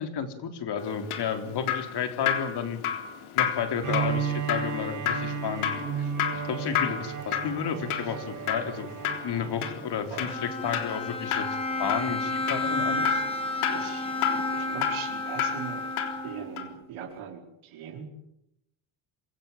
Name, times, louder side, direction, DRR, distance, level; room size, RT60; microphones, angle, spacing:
voice 1, 0.0-2.8 3.3-8.9 9.2-13.2, left 7 dB, 50° left, 7 dB, 3.7 m, -32 dB
Drip, 0.8-16.3 16.6-16.7, left 9 dB, 75° left, 3.8 m, -32 dB
Bowed string instrument, 3.8-9.8, right 6 dB, 35° right, 5.0 m, -33 dB
Bowed string instrument 2, 10.2-16.7, left 2 dB, 10° left, 4.2 m, -31 dB
voice 2, 13.7-14.1 14.5-15.9 16.2-18.1, right 8 dB, 70° right, 3 dB, 4.7 m, -40 dB
26.5 x 16.5 x 9.1 m, 0.79 s
cardioid pair, 130°, 50 cm